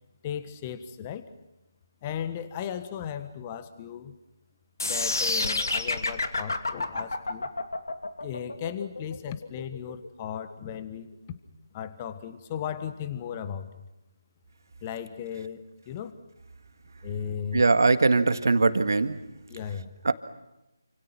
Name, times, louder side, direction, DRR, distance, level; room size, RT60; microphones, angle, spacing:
voice 1, 0.2-1.3 2.0-4.2 4.8-7.5 8.2-11.1 11.7-13.7 14.8-16.2 17.0-17.6 19.5-19.9, left 8 dB, 20° left, 12 dB, 1.5 m, -36 dB
sound 1, 4.8-10.8, left 3 dB, 65° left, 2.8 m, -29 dB
voice 2, 17.5-19.1 20.0-20.1, right 3 dB, 60° right, 9 dB, 1.9 m, -21 dB
29.0 x 27.0 x 6.0 m, 0.95 s
figure-of-eight pair, 155°, 2 cm